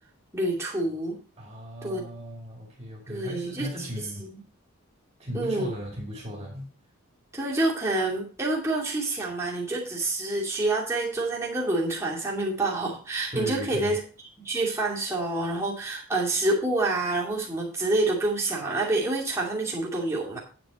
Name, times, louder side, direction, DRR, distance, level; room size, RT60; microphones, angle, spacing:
voice 1, 0.3-1.2 1.8-2.0 3.1-4.4 5.3-5.7 7.3-14.0 14.4-20.4, right 2 dB, 15° right, -4 dB, 2.6 m, -27 dB
voice 2, 1.4-4.3 5.2-6.7 13.3-14.0, equal, 30° right, -1 dB, 2.5 m, -36 dB
9.2 x 7.7 x 4.3 m, 0.37 s
head